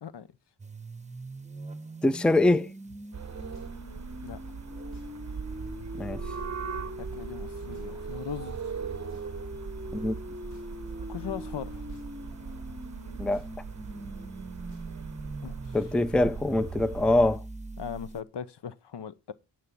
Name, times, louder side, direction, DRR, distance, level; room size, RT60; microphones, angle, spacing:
sound 1, 0.6-18.2, right 1 dB, 15° right, 1.2 m, -42 dB
voice 1, 2.0-2.7 6.0-6.2 9.9-10.1 13.2-13.4 15.7-17.4, left 2 dB, ahead, 0.5 m, -24 dB
sound 2, 2.2-4.4 4.8-5.3 5.6-5.8 6.3-14.9, equal, 75° left, 3.6 m, -55 dB
sound 3, 3.1-17.4, right 6 dB, 35° right, 0.9 m, -40 dB
voice 2, 7.0-8.6 11.1-11.8 15.4-15.8 17.8-19.3, left 8 dB, 60° left, 0.8 m, -39 dB
11.0 x 5.0 x 7.3 m
cardioid pair, 50°, 47 cm